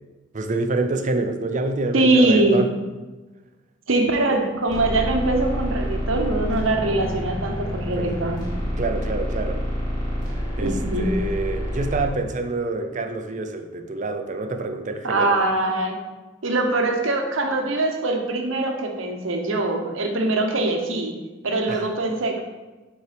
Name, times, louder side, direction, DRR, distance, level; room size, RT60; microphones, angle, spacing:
voice 1, 0.3-2.8 4.0-4.2 8.0-8.2 8.8-9.6 10.6-15.4 21.7-21.9, right 2 dB, 40° right, 6 dB, 0.6 m, -27 dB
voice 2, 1.9-2.6 3.9-8.4 10.6-11.1 15.0-16.0 16.4-21.1 21.4-22.4, right 2 dB, 75° right, 3 dB, 1.0 m, -22 dB
sound 1, 4.7-12.1, equal, 20° left, 2.1 m, -28 dB
5.4 x 4.6 x 5.1 m, 1.2 s
head